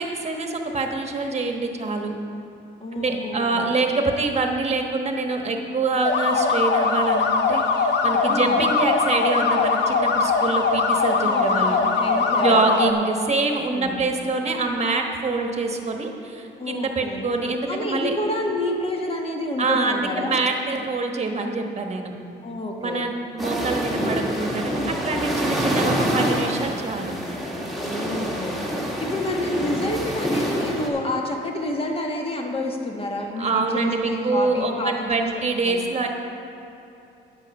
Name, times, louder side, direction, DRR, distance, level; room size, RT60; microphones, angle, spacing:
voice 1, 0.0-2.1 2.9-11.8 12.4-18.1 19.6-22.1 22.8-27.1 33.3-36.1, right 3 dB, 35° right, 3 dB, 1.2 m, -25 dB
voice 2, 2.8-3.6 8.3-8.6 11.2-12.6 13.7-14.0 16.6-17.2 17.7-20.4 22.4-23.1 27.7-28.5 29.0-35.3 35.6-35.8, left 1 dB, 30° left, 2 dB, 1.4 m, -29 dB
sound 1, 6.0-12.9, left 4 dB, 60° left, 0.9 m, -21 dB
sound 2, 23.4-30.9, equal, ahead, 1.8 m, -26 dB
9.8 x 7.5 x 5.3 m, 2.8 s
cardioid pair, 90°, 20 cm